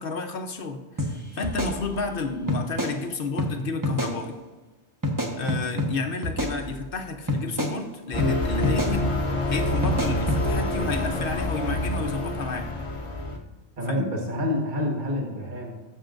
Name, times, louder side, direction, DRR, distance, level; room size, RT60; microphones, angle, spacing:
voice 1, 0.0-4.4 5.4-9.1 9.5-12.7 13.9-14.0, left 3 dB, 55° left, 5 dB, 0.9 m, -31 dB
sound 1, 1.0-1.1 1.4-2.2 2.5-2.9 3.4-3.5 3.8-4.1 5.0-5.9 6.2-7.0 7.3-7.7 8.2-8.3 8.6-8.9 9.8-10.4, left 1 dB, 15° right, 1.2 m, -27 dB
sound 2, 8.1-13.4, left 1 dB, 30° left, 1.0 m, -27 dB
voice 2, 13.8-15.7, left 1 dB, 45° right, -2 dB, 1.6 m, -28 dB
18.5 x 7.4 x 2.6 m, 1.2 s
omnidirectional pair, 1.2 m